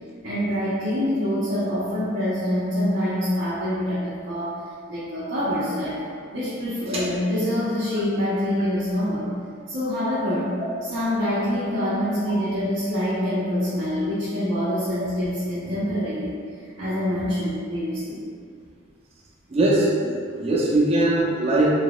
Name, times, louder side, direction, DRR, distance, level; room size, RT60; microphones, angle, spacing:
voice 1, 0.2-4.6 4.9-6.0 6.3-9.3 9.7-10.5 10.8-16.3 16.8-18.2, equal, 85° right, -12 dB, 0.8 m, -25 dB
voice 2, 19.5-21.8, right 1 dB, 30° right, -7 dB, 0.5 m, -21 dB
4.0 x 2.8 x 2.2 m, 2.2 s
head